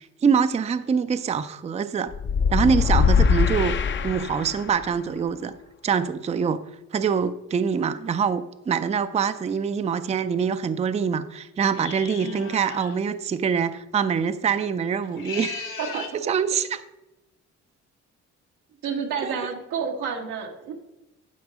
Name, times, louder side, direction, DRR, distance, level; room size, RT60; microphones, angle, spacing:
voice 1, 0.0-2.1 2.5-3.8 4.0-5.5 5.8-6.6 6.9-16.8 19.2-19.4, right 6 dB, 20° right, 11 dB, 0.4 m, -25 dB
sound 1, 2.1-4.8, left 6 dB, 40° left, 0.6 m, -21 dB
sound 2, 11.7-13.0 15.0-16.2, left 6 dB, 85° left, 2.0 m, -37 dB
voice 2, 15.8-16.2 18.8-20.7, right 6 dB, 90° right, 2 dB, 1.4 m, -30 dB
9.8 x 4.0 x 6.1 m, 0.93 s
cardioid pair, 90°, 30 cm